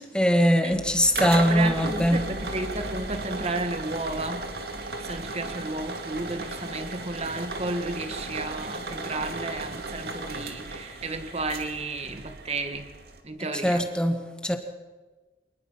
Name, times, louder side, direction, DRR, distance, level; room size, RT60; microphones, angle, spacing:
voice 1, 0.0-2.2 13.6-14.6, equal, 5° left, 1.7 m, -22 dB
sound 1, 0.7-13.2, right 2 dB, 60° right, 2.3 m, -35 dB
voice 2, 1.5-4.5 5.0-12.9 13.2-13.9, right 2 dB, 35° right, 1.9 m, -32 dB
26.5 x 19.5 x 5.8 m
head